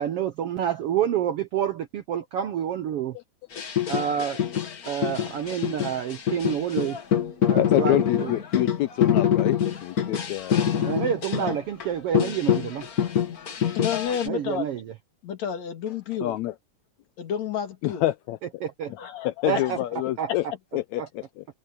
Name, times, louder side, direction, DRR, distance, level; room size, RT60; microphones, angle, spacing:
voice 1, 0.0-3.2 3.9-4.4 4.9-7.0 7.4-8.3 10.8-12.9 14.3-14.9 18.6-18.9 19.5-19.8 20.2-20.3 21.0-21.1, right 9 dB, 70° right, 1.4 m, -28 dB
sound 1, 3.5-11.9 12.1-14.3, left 9 dB, 40° left, 1.3 m, -25 dB
voice 2, 7.6-10.7 16.2-16.5 17.8-18.4 19.2-20.5 20.7-21.4, left 15 dB, 80° left, 1.8 m, -27 dB
voice 3, 13.7-14.7 15.2-16.4 17.2-18.0 19.0-19.3 19.6-19.7, left 8 dB, 60° left, 3.1 m, -30 dB
omnidirectional pair, 3.6 m